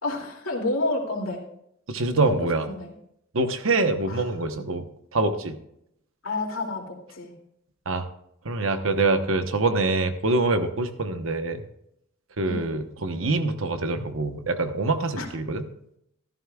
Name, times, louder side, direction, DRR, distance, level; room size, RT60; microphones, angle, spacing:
voice 1, 0.0-1.4 2.1-2.4 2.7-2.9 4.0-4.2 6.2-7.3 12.5-12.7 15.2-15.3, left 2 dB, 90° left, 0 dB, 2.5 m, -29 dB
voice 2, 1.9-2.6 3.3-4.8 5.1-5.6 7.9-8.1 8.4-11.6 12.4-15.6, right 3 dB, 75° right, 8 dB, 1.0 m, -25 dB
14.5 x 13.0 x 2.3 m, 0.75 s
head